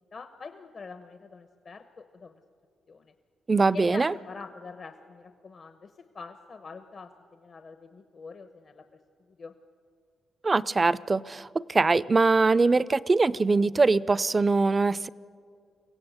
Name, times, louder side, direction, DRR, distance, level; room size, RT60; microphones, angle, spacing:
voice 1, 0.1-2.4 2.9-3.1 3.7-8.8 9.3-9.5, left 4 dB, 55° left, 1.0 m, -44 dB
voice 2, 3.5-4.1 10.4-15.1, right 3 dB, 35° right, 0.5 m, -22 dB
23.5 x 16.5 x 8.1 m
cardioid pair, 65°, 0 cm